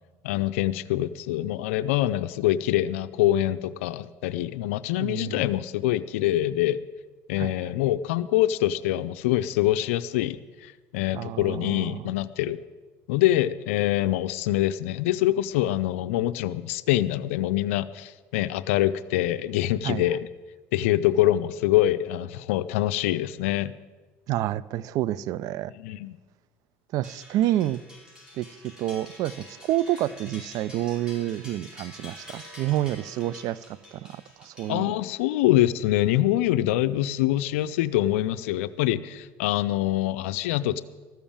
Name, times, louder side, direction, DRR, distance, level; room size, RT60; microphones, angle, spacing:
voice 1, 0.2-6.8 7.3-12.6 13.1-20.3 20.7-23.7 25.7-26.2 34.7-40.8, left 14 dB, 90° left, 0.5 m, -25 dB
voice 2, 5.0-5.5 7.4-7.6 11.1-12.1 19.8-20.0 24.3-25.7 26.9-27.8 28.4-34.9, right 13 dB, 60° right, 0.4 m, -29 dB
sound 1, 27.0-35.2, left 1 dB, 10° right, 4.8 m, -47 dB
13.5 x 7.1 x 8.7 m
supercardioid pair, 95°, 7 cm